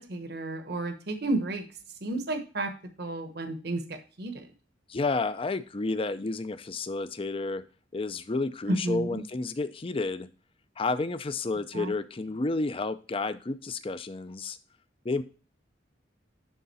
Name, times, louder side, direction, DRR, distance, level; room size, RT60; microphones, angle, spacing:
voice 1, 0.0-1.6 2.0-2.7 3.0-4.5 8.7-9.2 11.7-11.9, right 2 dB, 55° right, 7 dB, 1.0 m, -32 dB
voice 2, 4.9-7.6 7.9-10.3 10.8-14.6 15.0-15.2, left 3 dB, 30° left, 13 dB, 0.5 m, -31 dB
11.0 x 3.8 x 4.1 m, 0.35 s
head